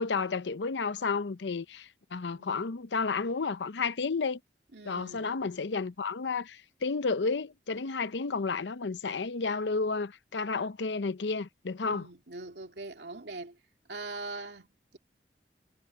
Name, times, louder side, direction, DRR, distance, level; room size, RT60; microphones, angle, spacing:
voice 1, 0.0-4.4 4.9-12.1, left 4 dB, 90° left, 0.7 m, -31 dB
voice 2, 2.3-2.7 4.7-5.3 11.8-13.6 13.9-15.0, right 3 dB, 75° right, 2.7 m, -42 dB
head